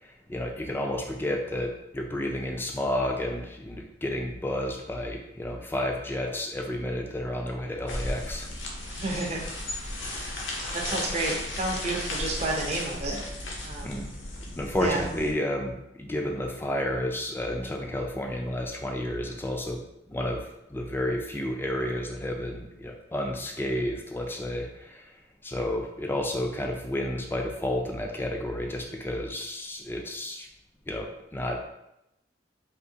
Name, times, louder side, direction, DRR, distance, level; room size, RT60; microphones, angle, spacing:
voice 1, 0.0-8.5 13.8-14.1 14.6-19.8 20.1-25.1 25.4-30.5 30.9-31.7, left 1 dB, 10° left, 1 dB, 0.3 m, -31 dB
sound 1, 7.9-15.3, left 1 dB, 80° left, 0.7 m, -35 dB
voice 2, 8.9-9.4 10.7-13.2 13.6-14.0 14.8-15.0, right 2 dB, 35° right, -1 dB, 0.6 m, -30 dB
3.5 x 2.5 x 2.7 m, 0.85 s
head